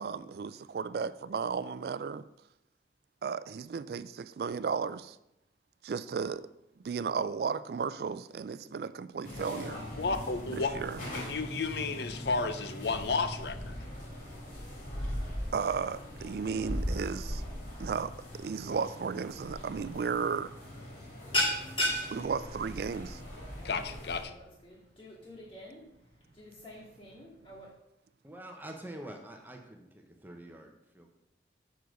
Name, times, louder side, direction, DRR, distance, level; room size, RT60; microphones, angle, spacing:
voice 1, 0.0-2.2 3.2-5.2 5.8-6.4 6.8-9.9 10.5-11.0 15.5-17.4 17.8-18.1 18.4-20.5 22.1-23.2, right 5 dB, 60° right, 15 dB, 0.3 m, -34 dB
sound 1, 9.2-24.2, equal, 50° left, 3.7 m, -40 dB
voice 2, 10.0-10.7 11.1-13.8 23.6-24.4, left 4 dB, 65° left, 11 dB, 0.7 m, -32 dB
sound 2, 19.7-20.0 20.3-20.6 20.8-27.7, equal, 30° left, 2.3 m, -36 dB
voice 3, 28.2-29.9 30.2-31.1, right 1 dB, 10° right, 3 dB, 0.8 m, -45 dB
7.0 x 6.2 x 5.2 m, 0.84 s
head